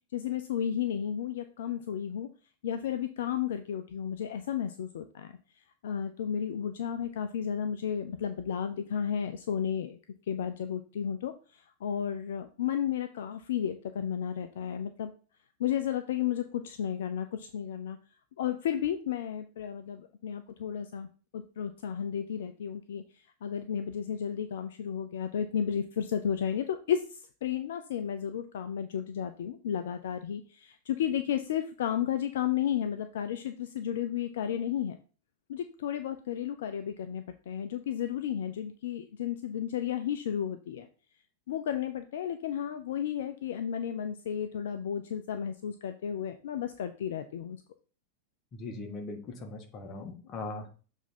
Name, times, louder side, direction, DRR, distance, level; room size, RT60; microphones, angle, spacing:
voice 1, 0.1-2.3 2.6-5.3 5.8-10.0 10.3-15.1 15.6-18.0 18.4-21.1 21.3-23.0 23.4-35.0 35.5-40.9 41.5-47.6, left 9 dB, 60° left, 9 dB, 0.5 m, -33 dB
voice 2, 48.5-50.7, left 3 dB, 30° left, 3 dB, 1.6 m, -40 dB
7.1 x 3.6 x 4.2 m, 0.37 s
figure-of-eight pair, 90°, 0 cm